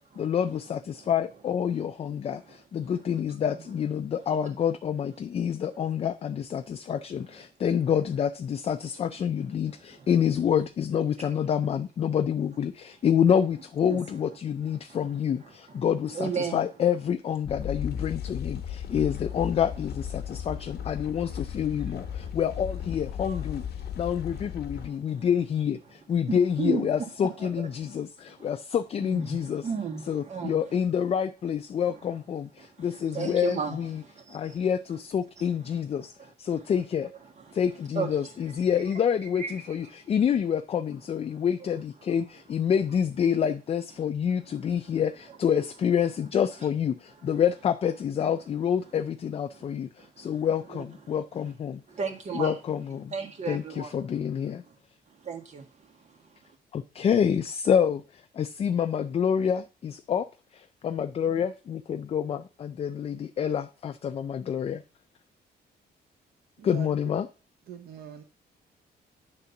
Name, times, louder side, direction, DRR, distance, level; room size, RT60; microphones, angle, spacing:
voice 1, 0.2-23.6 24.0-29.6 30.1-34.0 34.3-36.1 36.4-37.1 37.5-51.8 52.3-53.1 53.5-54.6 56.7-60.3 60.5-64.8 66.6-67.3, left 8 dB, 35° left, 0.4 m, -27 dB
voice 2, 9.7-10.1 11.2-11.4 13.8-14.0 14.8-15.1 15.4-15.5 16.1-16.6 18.6-18.7 18.9-19.0 20.3-21.4 21.9-22.3 23.2-23.5 23.8-24.5 24.8-25.3 26.3-28.0 28.3-28.5 29.0-30.8 31.8-31.9 32.6-34.7 35.4-35.8 36.2-36.7 37.4-37.6 38.0-38.6 39.3-40.0 41.3-41.7 44.5-45.0 45.3-45.4 49.5-49.6 50.0-51.5 51.9-52.6 52.9-54.1 54.7-54.8 55.1-56.6, right 6 dB, 40° right, 1.7 m, -37 dB
sound 1, 17.4-24.9, left 9 dB, 70° left, 1.1 m, -35 dB
voice 3, 66.6-66.9 67.7-68.2, right 7 dB, 60° right, 0.9 m, -42 dB
9.7 x 3.7 x 6.9 m
cardioid pair, 150°, 17 cm